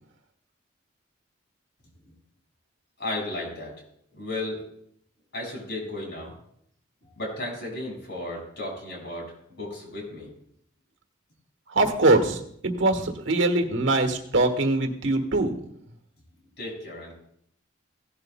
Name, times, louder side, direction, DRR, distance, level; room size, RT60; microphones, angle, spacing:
voice 1, 3.0-3.7 4.1-4.6 5.3-6.3 7.0-10.3 16.6-17.1, left 2 dB, 55° left, -1 dB, 5.4 m, -34 dB
voice 2, 11.7-15.6, right 2 dB, 75° right, 6 dB, 1.4 m, -23 dB
17.0 x 11.0 x 2.2 m, 0.70 s
head